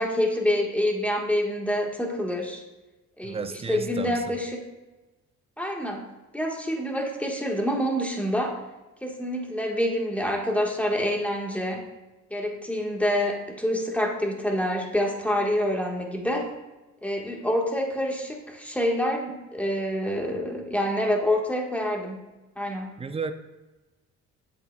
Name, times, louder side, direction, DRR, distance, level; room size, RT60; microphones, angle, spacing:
voice 1, 0.0-2.6 3.2-3.4 3.7-4.6 5.6-6.0 6.3-8.6 9.0-11.8 12.3-16.5 17.0-22.2 22.6-22.9, equal, 5° left, 1 dB, 1.3 m, -27 dB
voice 2, 3.2-4.3 23.0-23.3, right 5 dB, 20° right, 9 dB, 0.5 m, -33 dB
8.1 x 7.7 x 2.2 m, 1.1 s
cardioid pair, 90°, 30 cm